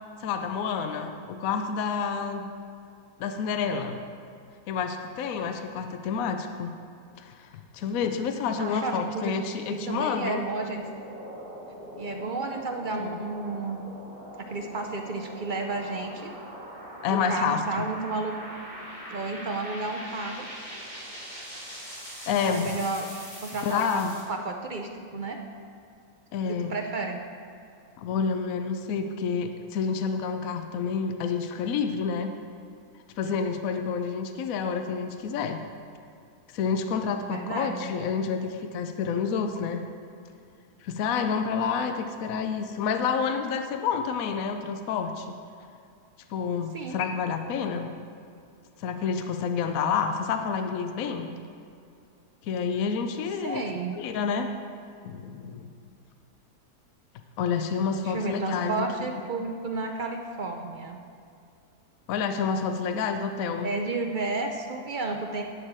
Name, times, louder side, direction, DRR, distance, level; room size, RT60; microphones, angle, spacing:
voice 1, 0.2-2.5 3.2-4.0 4.7-6.7 7.2-7.5 7.7-10.4 13.0-13.2 17.0-17.9 22.3-22.7 23.6-24.1 26.3-26.7 28.0-32.3 33.2-35.6 36.5-39.9 40.8-45.4 46.3-47.9 48.8-51.3 52.4-53.6 54.0-54.5 55.0-55.7 57.4-59.1 62.1-63.7, left 6 dB, 70° left, 7 dB, 1.0 m, -29 dB
voice 2, 8.6-9.4 9.7-10.8 12.0-13.8 14.4-16.3 17.1-18.4 19.1-20.5 22.4-23.1 23.4-23.9 24.3-25.4 26.5-27.2 37.3-37.9 46.7-47.0 53.4-54.0 58.0-61.0 63.6-65.4, right 3 dB, 60° right, 3 dB, 0.5 m, -32 dB
sound 1, 9.7-24.2, equal, 25° left, 2.9 m, -42 dB
11.0 x 4.8 x 7.4 m, 2.4 s
omnidirectional pair, 1.6 m